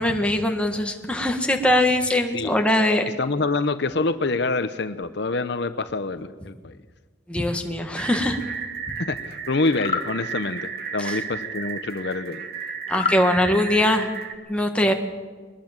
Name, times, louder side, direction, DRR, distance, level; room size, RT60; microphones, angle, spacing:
voice 1, 0.0-3.1 7.3-8.4 11.0-11.2 12.9-14.1 14.5-14.9, left 1 dB, 5° left, 3 dB, 1.7 m, -21 dB
voice 2, 3.2-6.8 9.0-12.5, left 3 dB, 60° left, 11 dB, 0.9 m, -26 dB
sound 1, 8.0-14.3, right 6 dB, 50° right, 2.2 m, -34 dB
Small Frog, 9.7-10.1 12.9-13.2, left 5 dB, 30° left, 1.3 m, -27 dB
22.5 x 20.0 x 7.4 m, 1.5 s
head